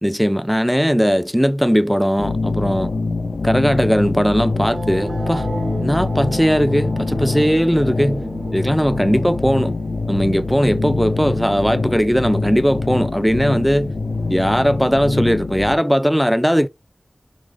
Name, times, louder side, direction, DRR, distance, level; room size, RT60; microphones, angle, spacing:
voice 1, 0.0-2.9 3.4-5.5 5.8-8.2 8.5-9.8 10.1-13.9 14.3-16.7, equal, ahead, 0.4 m, -18 dB
sound 1, 2.2-15.7, left 3 dB, 70° left, 0.5 m, -24 dB
sound 2, 4.4-10.6, right 1 dB, 45° right, 1.8 m, -37 dB
sound 3, 4.6-11.6, right 2 dB, 65° right, 0.6 m, -35 dB
5.0 x 2.0 x 3.4 m
wide cardioid pair, 45°, 0 cm